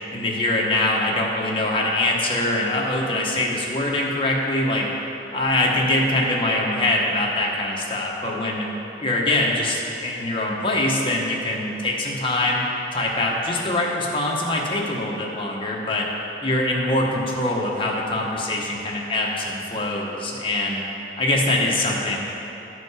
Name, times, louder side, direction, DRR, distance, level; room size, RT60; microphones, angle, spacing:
voice 1, 0.1-4.8 5.3-8.7 9.0-12.6 12.9-16.1 16.4-20.8 21.2-22.2, left 1 dB, 30° left, -2 dB, 1.0 m, -23 dB
11.0 x 5.1 x 4.9 m, 3.0 s
head